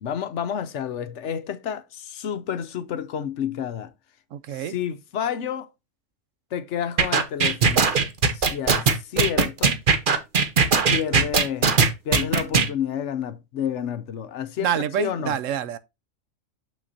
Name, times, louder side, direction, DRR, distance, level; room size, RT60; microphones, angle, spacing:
voice 1, 0.0-3.9 4.5-5.7 6.5-7.9 8.3-9.8 10.9-11.8 12.0-15.4, left 9 dB, 65° left, 0.9 m, -30 dB
voice 2, 4.3-4.7 14.6-15.8, right 9 dB, 75° right, 1.0 m, -27 dB
sound 1, 7.0-12.7, right 5 dB, 45° right, 1.0 m, -19 dB
6.6 x 6.1 x 2.7 m
omnidirectional pair, 1.4 m